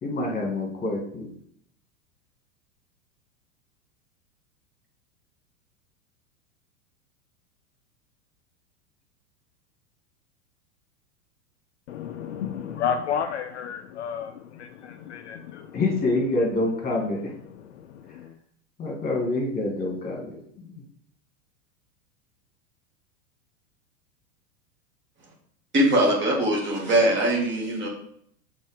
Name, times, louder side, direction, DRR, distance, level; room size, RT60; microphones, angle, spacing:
voice 1, 0.0-1.3 15.7-17.3 18.8-20.8, left 2 dB, 20° left, 1.9 m, -27 dB
voice 2, 11.9-15.8 17.5-18.4, left 7 dB, 50° left, 0.5 m, -32 dB
voice 3, 25.7-27.9, right 1 dB, 25° right, 2.0 m, -21 dB
5.4 x 4.4 x 4.9 m
figure-of-eight pair, 90°, 44 cm